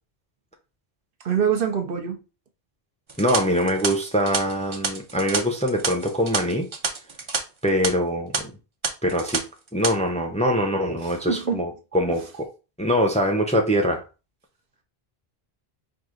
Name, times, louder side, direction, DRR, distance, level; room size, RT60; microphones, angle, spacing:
voice 1, 1.2-2.2 11.0-11.6 12.2-12.3, right 8 dB, 60° right, 0.9 m, -25 dB
sound 1, 3.1-7.4 7.7-7.9 8.3-8.4 8.8-9.4 9.7-9.9, right 4 dB, 35° right, 0.6 m, -28 dB
voice 2, 3.2-6.7 7.6-8.5 9.0-9.4 9.7-12.5 12.8-14.0, equal, 10° left, 0.6 m, -23 dB
4.8 x 2.4 x 3.8 m
omnidirectional pair, 1.0 m